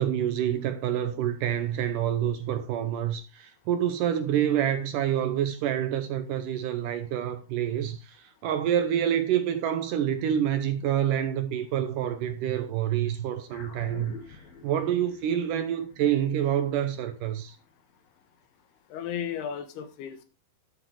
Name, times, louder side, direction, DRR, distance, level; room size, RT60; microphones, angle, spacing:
voice 1, 0.0-17.6, right 10 dB, 75° right, 2.2 m, -27 dB
sound 1, 13.5-18.1, left 4 dB, 50° left, 2.9 m, -49 dB
voice 2, 18.9-20.2, left 8 dB, 85° left, 3.4 m, -34 dB
11.5 x 7.8 x 4.7 m
omnidirectional pair, 4.5 m